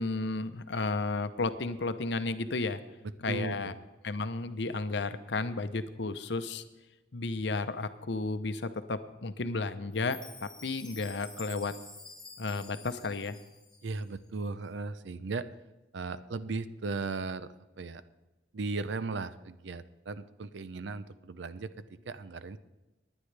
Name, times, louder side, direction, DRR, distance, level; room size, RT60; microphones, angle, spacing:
voice 1, 0.0-2.8 3.2-3.7 4.0-6.6 7.1-11.7 12.4-13.4, left 3 dB, 70° left, 11 dB, 0.7 m, -33 dB
voice 2, 3.3-3.7 13.8-15.4 15.9-17.5 17.8-18.0 18.5-21.7 22.1-22.6, right 3 dB, 75° right, 14 dB, 0.6 m, -36 dB
Chime, 9.9-14.1, left 3 dB, 5° left, 2.0 m, -50 dB
20.0 x 9.8 x 3.3 m, 1.1 s
head